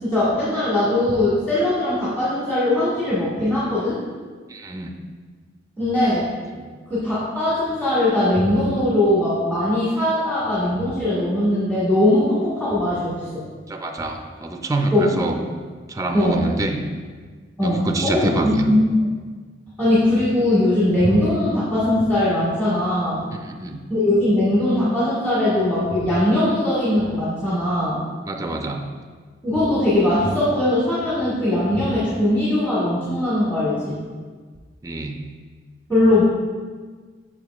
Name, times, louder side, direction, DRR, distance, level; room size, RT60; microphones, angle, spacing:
voice 1, 0.0-4.0 5.8-6.3 6.9-13.4 14.9-15.3 16.1-16.5 17.6-18.9 19.8-23.2 23.9-28.0 29.4-34.0 35.9-36.2, left 1 dB, 10° left, -12 dB, 1.6 m, -20 dB
voice 2, 4.5-4.9 6.5-6.6 13.7-15.4 15.9-16.8 17.6-18.7 23.3-23.8 28.3-28.9 34.8-35.2, right 2 dB, 20° right, 3 dB, 0.4 m, -26 dB
6.5 x 6.0 x 2.4 m, 1.5 s
head